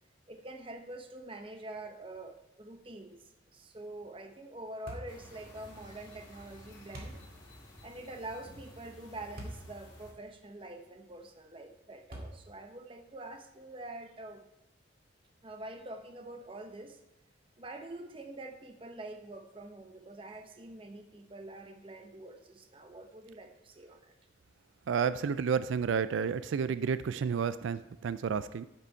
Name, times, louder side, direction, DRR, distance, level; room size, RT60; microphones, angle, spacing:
voice 1, 0.3-7.2 7.8-14.4 15.4-17.0 17.6-24.1, right 2 dB, 25° right, 6 dB, 0.8 m, -46 dB
sound 1, 4.9-5.2 6.9-7.2 9.4-9.7 10.3-10.4 12.1-12.6, right 1 dB, 50° right, 2.1 m, -42 dB
sound 2, 5.1-10.1, left 1 dB, 25° left, 2.2 m, -53 dB
voice 2, 24.9-28.7, right 6 dB, 80° right, 14 dB, 0.3 m, -31 dB
9.9 x 6.9 x 4.4 m, 0.98 s
head